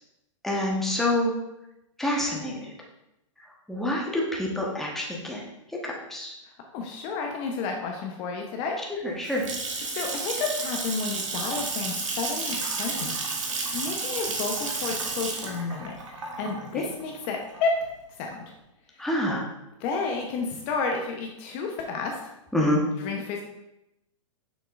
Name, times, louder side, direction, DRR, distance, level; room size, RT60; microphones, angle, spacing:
voice 1, 0.4-1.3 2.0-2.6 3.7-5.4 5.8-6.3 9.0-9.4 16.7-16.9 19.0-19.4 22.5-22.8, left 1 dB, ahead, -3 dB, 1.1 m, -27 dB
voice 2, 6.7-8.8 9.8-13.2 13.7-15.9 16.4-17.7 18.2-18.4 19.0-19.1 19.8-22.2 23.0-23.4, left 4 dB, 35° left, 2 dB, 0.8 m, -31 dB
Water tap faucet / Sink (filling or washing) / Splash splatter, 9.0-17.9, right 4 dB, 70° right, 1.4 m, -32 dB
6.8 x 6.1 x 2.5 m, 0.90 s
hypercardioid pair, 115°, 17 cm